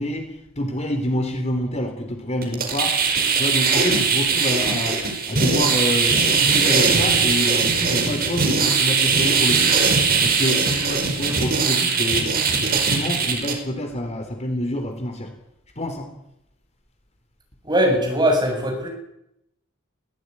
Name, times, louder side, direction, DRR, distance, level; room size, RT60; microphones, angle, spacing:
voice 1, 0.0-3.0 3.3-9.8 10.2-12.3 12.6-15.3 15.8-16.1, left 1 dB, 30° left, 6 dB, 3.5 m, -27 dB
sound 1, 2.4-13.5, right 5 dB, 45° right, 4.9 m, -20 dB
voice 2, 17.6-18.9, equal, 20° right, 2 dB, 7.4 m, -20 dB
21.5 x 18.0 x 9.7 m, 0.82 s
head